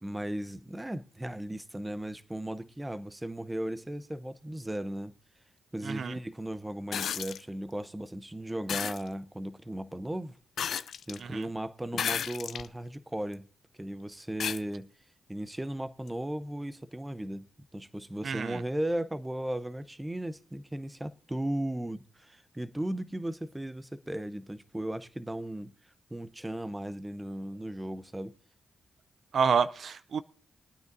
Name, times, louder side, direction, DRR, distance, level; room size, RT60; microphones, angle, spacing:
voice 1, 0.0-5.1 5.7-10.4 11.1-13.4 13.8-14.9 15.3-17.5 17.7-25.7 26.1-28.3, right 1 dB, 15° right, 0.7 m, -36 dB
voice 2, 5.8-6.1 11.2-11.4 18.2-18.6 29.3-30.2, right 6 dB, 65° right, 0.4 m, -28 dB
sound 1, 6.9-7.4 8.7-9.0 10.6-11.2 11.9-12.7 13.3-13.4 14.4-14.6 16.1-16.2, left 8 dB, 75° left, 0.4 m, -32 dB
22.0 x 9.3 x 2.7 m
cardioid pair, 55°, 0 cm